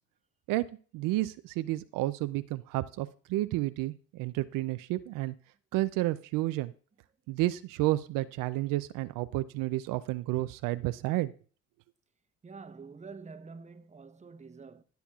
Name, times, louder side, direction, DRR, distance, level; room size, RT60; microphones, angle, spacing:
voice 1, 0.9-5.3 5.7-6.7 7.3-11.3, right 17 dB, 80° right, 0.5 m, -31 dB
voice 2, 12.4-14.8, right 4 dB, 20° right, 0.9 m, -47 dB
19.5 x 7.0 x 2.4 m
supercardioid pair, 85°, 32 cm